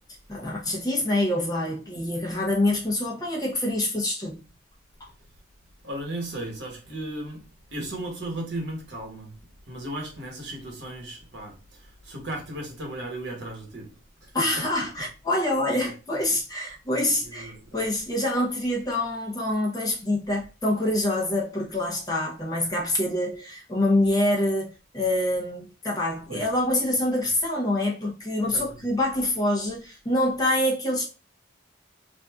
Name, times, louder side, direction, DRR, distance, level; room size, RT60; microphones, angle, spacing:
voice 1, 0.3-4.4 14.3-31.0, left 1 dB, 20° left, 0.7 m, -26 dB
voice 2, 5.8-9.4 9.6-14.4 15.8-15.9 17.2-17.8 26.3-26.5 28.4-28.7, right 1 dB, 60° right, 1.2 m, -36 dB
2.6 x 2.3 x 3.5 m
head